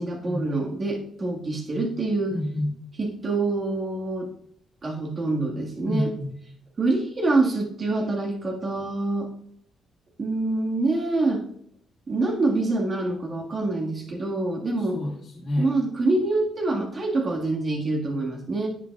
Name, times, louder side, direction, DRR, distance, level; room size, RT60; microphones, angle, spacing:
voice 1, 0.0-2.3 3.0-4.3 4.8-6.1 6.8-9.3 10.2-11.4 12.1-15.0 15.6-18.7, right 2 dB, 40° right, 0 dB, 1.7 m, -26 dB
voice 2, 2.3-2.7 5.9-6.3 14.9-15.7, left 1 dB, 45° left, -6 dB, 2.0 m, -28 dB
10.0 x 7.7 x 2.4 m, 0.66 s
cardioid pair, 90°, 0 cm